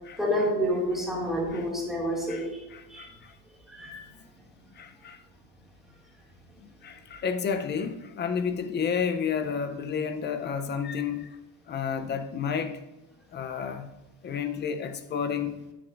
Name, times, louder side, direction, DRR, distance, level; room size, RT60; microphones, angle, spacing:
voice 1, 0.2-2.6 2.9-3.0 3.7-4.0, equal, ahead, 2.1 m, -28 dB
voice 2, 2.3-3.3 3.8-3.9 4.2-4.3 4.7-5.2 6.6-11.4 11.7-12.8 13.3-13.9 14.2-15.6, left 6 dB, 25° left, 0.5 m, -31 dB
10.0 x 9.2 x 2.5 m
cardioid pair, 155°, 41 cm